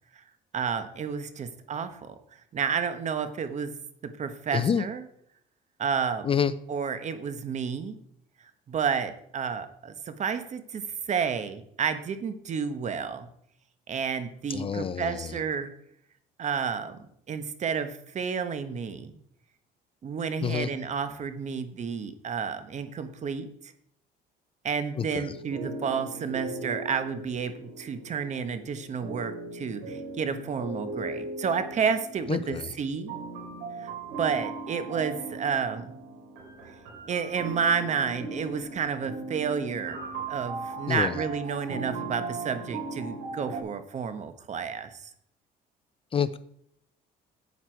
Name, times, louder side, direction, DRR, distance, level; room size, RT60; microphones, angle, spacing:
voice 1, 0.5-2.1 2.5-3.7 4.0-5.0 5.8-6.3 6.7-8.0 8.7-10.8 11.1-13.3 13.9-15.7 16.4-19.2 20.0-23.5 24.6-33.1 33.8-33.9 34.2-35.9 37.1-45.0, right 6 dB, 45° right, 10 dB, 1.1 m, -31 dB
voice 2, 4.5-4.8 6.2-6.5 14.5-15.4 20.4-20.7 25.0-25.3 32.3-32.7 40.9-41.2 46.1-46.4, left 7 dB, 30° left, 15 dB, 0.5 m, -28 dB
sound 1, 25.2-43.6, right 3 dB, 90° right, 3.9 m, -38 dB
9.5 x 8.2 x 4.5 m, 0.70 s
cardioid pair, 110°, 17 cm